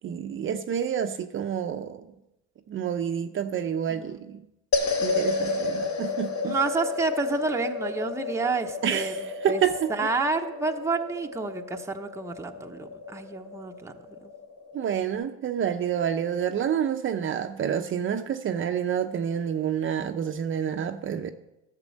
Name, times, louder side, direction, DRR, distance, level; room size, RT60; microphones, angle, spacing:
voice 1, 0.0-2.1 2.7-4.4 5.0-6.6 8.8-10.1 14.7-21.3, right 8 dB, 35° right, 6 dB, 0.7 m, -28 dB
sound 1, 4.7-15.2, left 3 dB, 50° left, 2.3 m, -32 dB
voice 2, 6.4-9.6 9.9-14.3, right 3 dB, 10° right, 4 dB, 0.9 m, -30 dB
12.5 x 7.5 x 6.4 m, 0.91 s
supercardioid pair, 110°, 35 cm